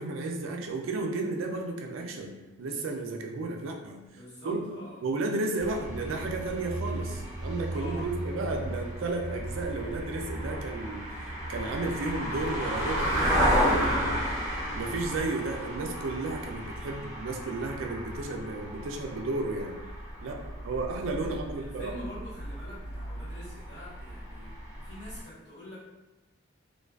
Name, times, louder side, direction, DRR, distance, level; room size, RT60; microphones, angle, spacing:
voice 1, 0.0-4.0 4.4-4.7 5.0-11.1 11.5-13.1 13.4-14.4 14.7-19.8 20.2-22.0, right 2 dB, 75° right, 3 dB, 0.4 m, -33 dB
voice 2, 4.0-5.2 7.7-8.1 21.2-25.8, left 1 dB, 50° left, -11 dB, 1.3 m, -45 dB
sound 1, 5.6-25.2, equal, 10° right, 0.4 m, -33 dB
2.5 x 2.3 x 2.3 m, 1.1 s
head